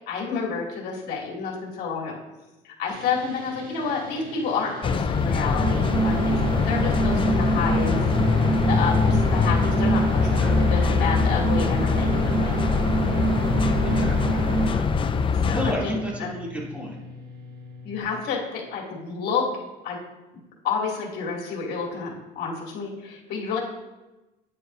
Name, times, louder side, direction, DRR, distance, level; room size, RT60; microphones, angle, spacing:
voice 1, 0.1-2.1 2.6-8.0 8.7-12.5 15.4-15.9 16.2-16.3 17.8-19.5 19.8-20.0 20.6-23.6, left 5 dB, 75° left, -3 dB, 2.8 m, -29 dB
sound 1, 2.9-18.0, left 1 dB, 55° right, 1.8 m, -43 dB
sound 2, 4.8-15.7, left 5 dB, 30° left, 0.5 m, -23 dB
sound 3, 5.5-14.8, right 4 dB, 80° right, 1.3 m, -27 dB
voice 2, 10.2-10.6 13.8-14.4 14.6-14.9 15.3-17.0, equal, 10° right, -4 dB, 2.9 m, -32 dB
9.6 x 9.5 x 2.7 m, 1.1 s
cardioid pair, 110°, 17 cm